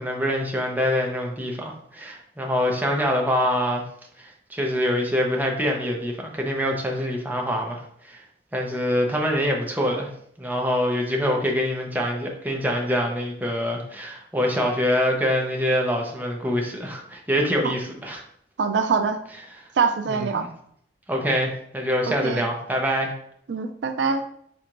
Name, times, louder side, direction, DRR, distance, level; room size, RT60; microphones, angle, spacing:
voice 1, 0.0-3.8 4.2-8.2 8.5-10.1 10.4-18.2 20.1-20.5 21.1-23.1, equal, 10° right, 0 dB, 0.7 m, -25 dB
voice 2, 18.6-19.2 19.8-20.5 22.1-22.4 23.5-24.2, right 5 dB, 85° right, 8 dB, 0.4 m, -24 dB
4.5 x 4.2 x 2.5 m, 0.67 s
head